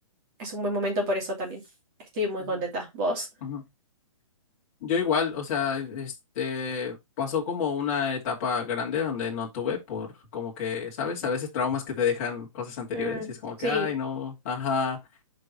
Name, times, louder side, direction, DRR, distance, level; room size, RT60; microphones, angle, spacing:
voice 1, 0.4-1.6 2.1-3.3 12.9-13.9, equal, 20° right, 3.1 m, -29 dB
voice 2, 4.8-10.1 10.3-15.0, left 6 dB, 25° left, 2.6 m, -29 dB
6.8 x 4.7 x 4.1 m
hypercardioid pair, 175°, 18 cm